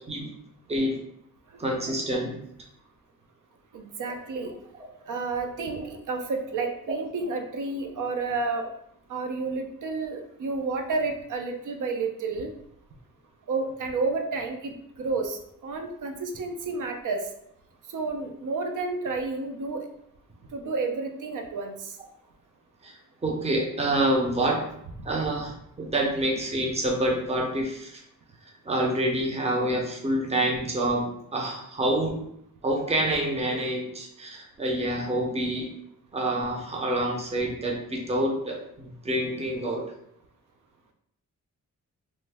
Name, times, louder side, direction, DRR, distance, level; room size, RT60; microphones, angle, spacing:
voice 1, 1.6-2.4 22.8-22.9 23.2-24.6 25.0-28.0 28.6-32.2 32.6-35.7 36.1-39.8, right 1 dB, 20° right, 0 dB, 0.6 m, -27 dB
voice 2, 3.7-4.5 5.1-8.7 9.1-12.5 13.5-14.7 15.0-17.3 17.9-19.9 20.5-22.0, right 3 dB, 65° right, 4 dB, 0.5 m, -30 dB
3.1 x 2.1 x 3.3 m, 0.73 s
wide cardioid pair, 125°, 33 cm